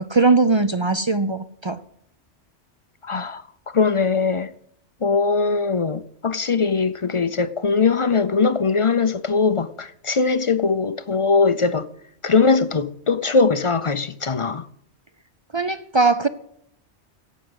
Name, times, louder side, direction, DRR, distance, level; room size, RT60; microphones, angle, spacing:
voice 1, 0.0-1.8 15.5-16.3, right 3 dB, 40° right, 0.4 m, -20 dB
voice 2, 3.0-4.5 5.0-11.9 12.2-14.7, left 4 dB, 40° left, 0.4 m, -21 dB
16.5 x 6.2 x 9.6 m
omnidirectional pair, 1.2 m